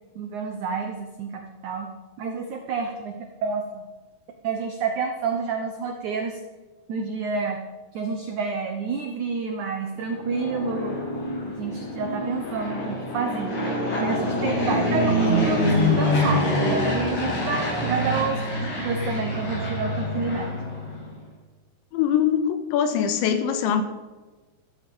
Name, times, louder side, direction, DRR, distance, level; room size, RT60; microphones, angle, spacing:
voice 1, 0.1-1.9 2.2-3.8 4.4-6.4 6.9-7.6 7.9-11.0 11.6-13.6 14.0-20.5, right 4 dB, 85° right, 4 dB, 1.7 m, -29 dB
Fixed-wing aircraft airplane, 10.0-21.1, left 1 dB, 65° left, 8.2 m, -25 dB
voice 2, 21.9-23.8, left 8 dB, 90° left, 9 dB, 3.5 m, -22 dB
14.5 x 14.5 x 5.5 m, 1.3 s
omnidirectional pair, 5.2 m